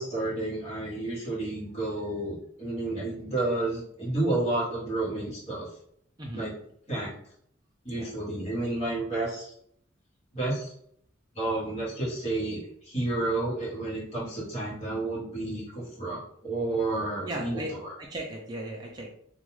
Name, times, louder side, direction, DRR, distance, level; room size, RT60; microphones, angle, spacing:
voice 1, 0.0-5.7 6.3-6.5 6.9-7.1 7.8-9.5 10.3-10.7 11.4-12.6 12.9-17.9, right 2 dB, 35° left, -7 dB, 1.0 m, -31 dB
voice 2, 6.2-6.5 7.9-8.1 17.2-17.7 18.0-19.1, right 1 dB, 20° right, -1 dB, 0.4 m, -36 dB
2.3 x 2.2 x 3.1 m, 0.69 s
head